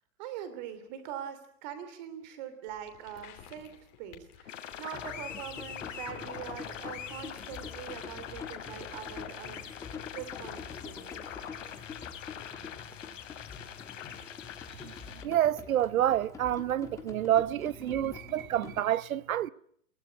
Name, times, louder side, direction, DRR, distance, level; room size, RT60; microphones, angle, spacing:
voice 1, 0.2-9.7 10.1-11.2, right 10 dB, 30° right, 3.0 m, -43 dB
sound 1, 2.7-17.3, left 11 dB, 25° left, 2.9 m, -57 dB
sound 2, 4.5-15.2, left 9 dB, 60° left, 3.2 m, -43 dB
sound 3, 4.9-18.8, left 6 dB, 5° left, 1.3 m, -46 dB
voice 2, 15.2-19.5, right 11 dB, 70° right, 0.9 m, -28 dB
23.5 x 17.0 x 9.3 m
hypercardioid pair, 170°, 43 cm